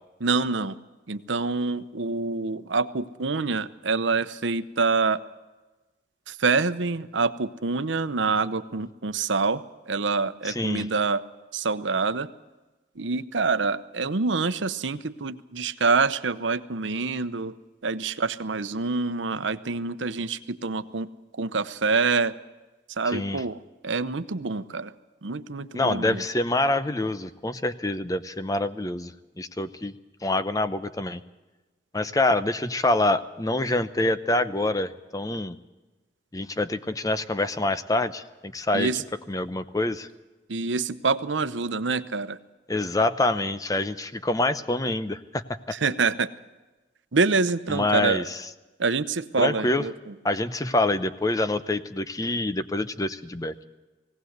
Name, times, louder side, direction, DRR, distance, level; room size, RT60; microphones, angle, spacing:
voice 1, 0.2-0.8 1.1-5.2 6.3-11.2 11.5-12.3 13.0-17.6 17.8-21.1 21.4-22.4 22.9-24.9 25.2-26.2 38.7-39.0 40.5-42.4 45.7-46.3 47.1-48.3 48.8-50.1, right 4 dB, 80° right, 13 dB, 0.8 m, -26 dB
voice 2, 10.4-10.9 23.1-23.4 25.7-29.9 30.2-31.2 31.9-35.6 36.3-38.9 39.3-40.1 42.7-45.7 47.7-48.4 49.4-49.8 50.2-53.5, left 2 dB, 20° left, 12 dB, 0.7 m, -26 dB
18.5 x 17.5 x 8.1 m, 1.2 s
head